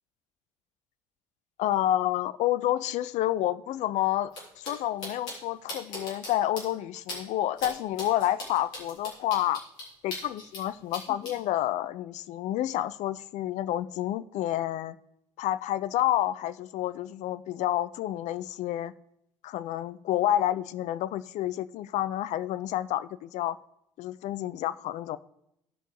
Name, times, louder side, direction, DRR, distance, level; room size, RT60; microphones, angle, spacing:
voice 1, 1.6-9.6 10.0-15.0 15.4-18.9 19.4-23.6 24.0-25.2, left 13 dB, 50° left, 15 dB, 0.4 m, -29 dB
sound 1, 4.3-4.4 4.6-4.7 5.0-5.3 5.7-6.3 6.6-6.7 7.1-7.2 7.6-7.7 8.0-10.6 10.9-11.3, left 2 dB, 65° left, 3.3 m, -37 dB
16.5 x 5.4 x 3.2 m, 0.79 s
figure-of-eight pair, 55°, 16 cm